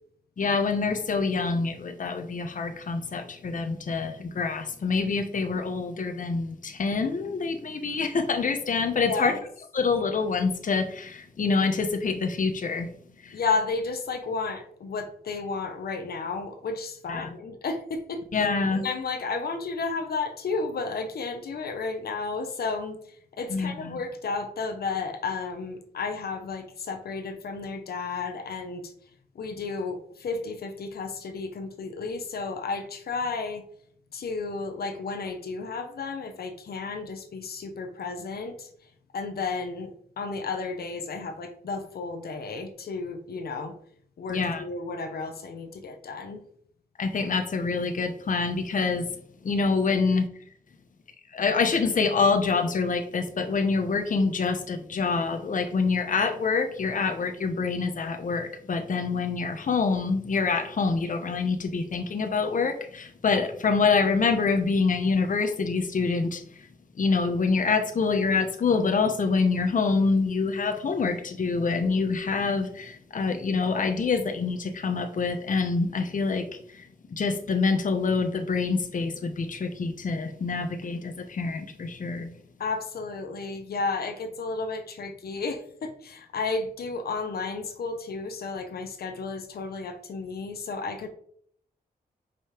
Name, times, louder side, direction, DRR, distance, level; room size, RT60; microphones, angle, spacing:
voice 1, 0.4-9.3 9.7-12.9 13.2-13.4 17.1-17.3 18.3-18.8 23.5-24.0 44.3-44.6 47.0-49.1 49.4-50.3 51.3-66.7 67.0-76.9 77.1-82.3, left 4 dB, 60° left, 6 dB, 1.0 m, -26 dB
voice 2, 9.1-9.4 13.3-18.5 18.8-28.9 29.3-33.6 34.1-38.7 39.1-43.7 44.2-46.4 82.6-91.1, left 4 dB, 85° left, 7 dB, 1.1 m, -32 dB
5.5 x 5.5 x 5.1 m, 0.62 s
wide cardioid pair, 90°, 16 cm